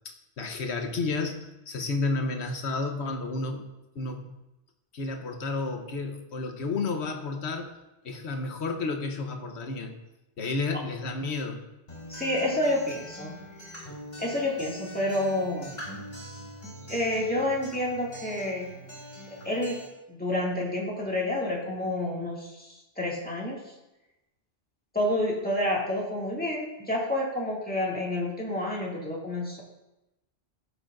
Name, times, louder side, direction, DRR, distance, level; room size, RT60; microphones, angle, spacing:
voice 1, 0.0-3.7 3.9-4.3 4.9-7.7 8.0-9.9 10.4-11.6, left 3 dB, 70° left, 5 dB, 1.2 m, -31 dB
Acoustic guitar, 11.9-19.9, equal, 45° left, 3.7 m, -43 dB
voice 2, 12.1-13.3 14.2-15.7 16.8-18.7 19.3-19.8 20.1-23.6 24.9-29.6, left 1 dB, 10° left, -4 dB, 2.1 m, -29 dB
16.0 x 6.7 x 2.5 m, 0.97 s
omnidirectional pair, 1.2 m